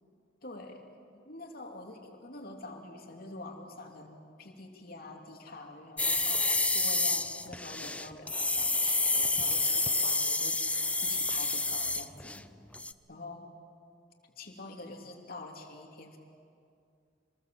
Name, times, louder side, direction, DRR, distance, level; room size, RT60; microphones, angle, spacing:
voice 1, 0.4-0.8 1.1-12.4 13.1-13.5 14.4-16.2, left 2 dB, 55° left, 1 dB, 3.0 m, -46 dB
sound 1, 6.0-12.4 12.7-12.9, left 3 dB, 5° left, 0.6 m, -29 dB
26.5 x 20.5 x 7.8 m, 2.4 s
head